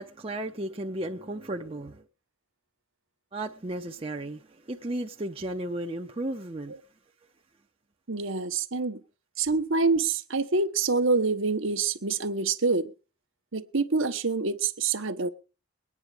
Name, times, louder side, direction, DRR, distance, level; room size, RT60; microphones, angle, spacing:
voice 1, 0.0-2.0 3.3-6.8, right 1 dB, 25° right, 0.7 m, -34 dB
voice 2, 8.1-9.0 9.4-12.9 13.5-15.3, right 4 dB, 65° right, 1.1 m, -26 dB
21.5 x 9.7 x 4.9 m
head